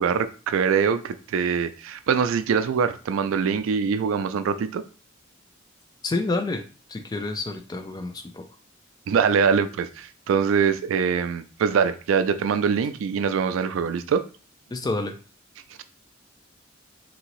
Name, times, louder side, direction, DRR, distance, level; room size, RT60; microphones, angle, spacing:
voice 1, 0.0-4.8 9.1-14.2, right 6 dB, 80° right, 0.3 m, -23 dB
voice 2, 6.0-6.6 6.9-8.5 14.7-15.1, left 2 dB, 20° left, 0.3 m, -28 dB
2.8 x 2.7 x 3.0 m
head